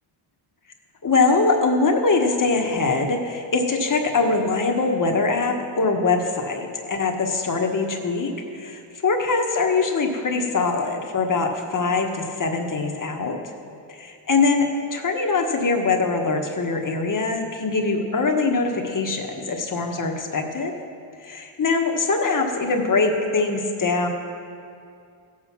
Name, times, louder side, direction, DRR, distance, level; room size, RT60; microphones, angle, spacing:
voice 1, 1.0-13.4 13.9-20.7 21.2-24.1, left 3 dB, 40° left, 3 dB, 1.5 m, -23 dB
15.5 x 7.6 x 6.1 m, 2.4 s
cardioid pair, 105°, 49 cm